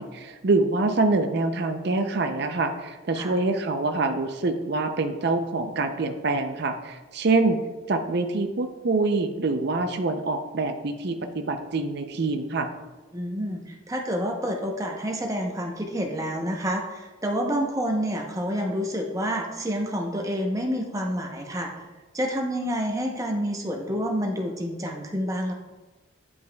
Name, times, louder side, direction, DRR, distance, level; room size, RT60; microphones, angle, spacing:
voice 1, 0.0-7.6 7.9-12.7, right 3 dB, 55° right, 6 dB, 0.5 m, -25 dB
voice 2, 13.1-21.8 22.1-25.5, equal, 15° right, 1 dB, 0.8 m, -28 dB
9.5 x 5.3 x 2.3 m, 1.2 s
head